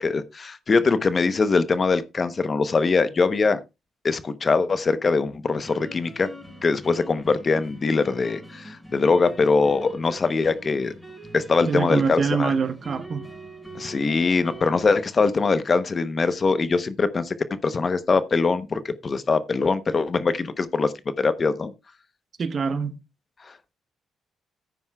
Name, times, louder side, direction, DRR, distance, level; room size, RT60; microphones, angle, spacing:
voice 1, 0.0-3.6 4.0-6.3 6.6-10.9 11.3-12.5 13.7-21.7 23.4-23.7, left 4 dB, 40° left, 0.9 m, -22 dB
sound 1, 5.6-15.0, equal, 10° left, 5.9 m, -43 dB
voice 2, 11.7-13.3 22.4-23.0, right 5 dB, 50° right, 1.0 m, -25 dB
14.5 x 9.3 x 2.3 m
supercardioid pair, 70°, 0 cm